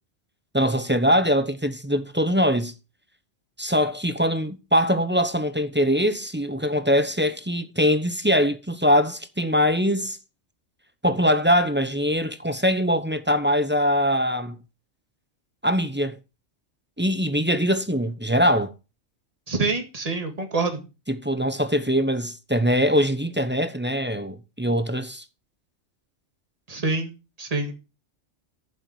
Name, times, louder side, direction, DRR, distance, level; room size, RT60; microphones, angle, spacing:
voice 1, 0.5-2.7 3.6-10.2 11.0-14.6 15.6-16.2 17.0-18.7 21.1-25.2, equal, 10° right, 0.8 m, -22 dB
voice 2, 19.5-20.8 26.7-27.1 27.4-27.7, right 3 dB, 30° right, 2.1 m, -26 dB
8.8 x 7.4 x 6.3 m
omnidirectional pair, 1.3 m